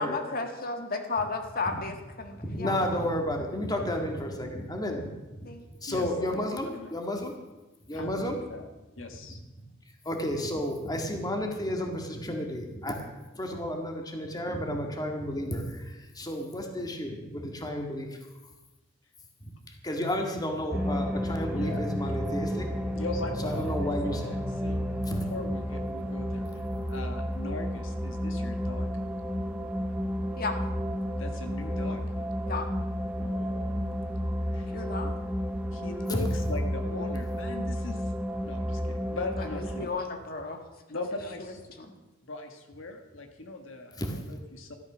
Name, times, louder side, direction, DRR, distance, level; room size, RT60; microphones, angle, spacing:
voice 1, 0.0-2.8 5.4-5.6 6.2-6.3 30.4-30.6 32.5-32.7 34.7-35.1 39.4-39.5 39.8-40.6 41.8-41.9, left 3 dB, 50° left, 5 dB, 1.7 m, -33 dB
voice 2, 2.4-5.1 5.4-5.5 5.8-7.3 7.9-8.4 10.1-18.2 19.8-22.7 23.4-24.3 25.1-25.3 36.1-36.2 44.0-44.2, equal, 20° left, 3 dB, 1.9 m, -32 dB
voice 3, 7.9-8.6 9.0-9.4 21.5-21.8 22.9-28.9 31.1-32.1 33.2-33.8 34.5-34.7 35.7-38.1 38.4-39.9 40.9-41.6 42.2-44.7, left 2 dB, 80° left, 4 dB, 1.5 m, -40 dB
sound 1, 20.7-39.9, equal, 5° right, 0.8 m, -31 dB
14.0 x 12.0 x 6.2 m, 1.1 s
head